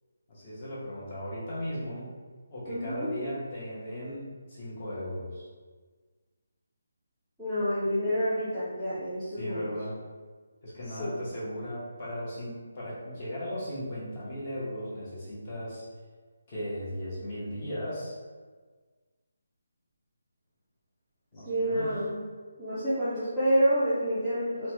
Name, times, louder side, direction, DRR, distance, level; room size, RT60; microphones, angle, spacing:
voice 1, 0.3-2.1 2.5-5.5 9.4-10.0 10.6-15.8 16.5-18.2 21.3-22.0, equal, 25° left, -8 dB, 0.8 m, -37 dB
voice 2, 2.7-3.1 7.4-9.7 11.0-11.1 21.5-22.3 22.6-24.7, equal, ahead, -18 dB, 0.5 m, -28 dB
3.0 x 2.1 x 2.9 m, 1.4 s
hypercardioid pair, 175°, 0 cm